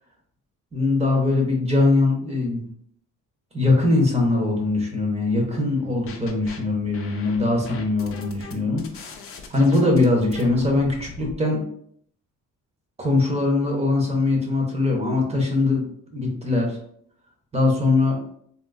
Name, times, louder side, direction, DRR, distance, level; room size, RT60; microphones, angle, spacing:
voice 1, 0.7-2.7 3.5-9.1 9.5-11.6 13.0-15.8 16.1-16.8 17.5-18.2, left 2 dB, 20° right, 0 dB, 0.7 m, -21 dB
sound 1, 5.8-6.6 6.9-11.4, left 4 dB, 45° left, 0.4 m, -40 dB
3.6 x 2.3 x 2.3 m, 0.66 s
cardioid pair, 150°, 33 cm